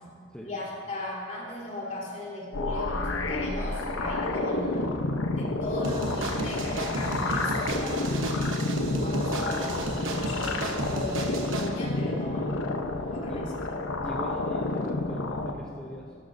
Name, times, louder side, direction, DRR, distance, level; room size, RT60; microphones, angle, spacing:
voice 1, 0.4-4.9 5.3-8.1 9.0-12.6 13.1-14.0, left 1 dB, 40° left, -6 dB, 3.1 m, -37 dB
sound 1, 2.5-15.5, left 2 dB, 80° left, 0.8 m, -30 dB
sound 2, 5.8-11.7, right 2 dB, 75° right, 1.0 m, -33 dB
voice 2, 13.0-13.4 14.0-16.1, equal, 5° left, -3 dB, 0.6 m, -43 dB
15.5 x 13.5 x 2.6 m, 2.2 s
head